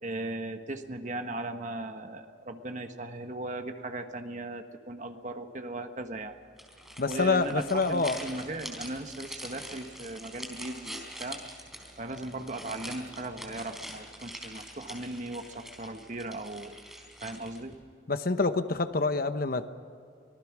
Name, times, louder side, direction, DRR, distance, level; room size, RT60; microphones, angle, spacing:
voice 1, 0.0-6.3 7.1-11.4 12.0-16.8 17.2-17.7, right 2 dB, 40° right, 6 dB, 1.4 m, -38 dB
sound 1, 6.6-17.7, equal, ahead, 3.9 m, -44 dB
voice 2, 7.0-8.2 18.1-19.7, left 3 dB, 50° left, 10 dB, 0.9 m, -27 dB
25.0 x 19.0 x 6.2 m, 2.4 s
head